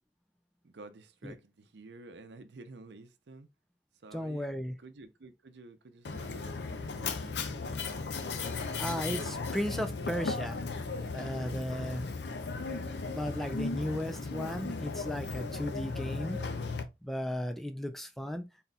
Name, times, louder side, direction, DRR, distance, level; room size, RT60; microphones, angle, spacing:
voice 1, 0.6-3.5 4.0-4.5 4.8-7.5, right 3 dB, 80° right, 0.6 m, -51 dB
voice 2, 4.1-4.8 8.8-10.6 11.1-12.1 13.1-16.4 17.0-18.5, equal, ahead, 0.4 m, -35 dB
Mechanisms, 6.1-16.8, left 4 dB, 80° left, 0.6 m, -36 dB
4.1 x 4.1 x 2.3 m
head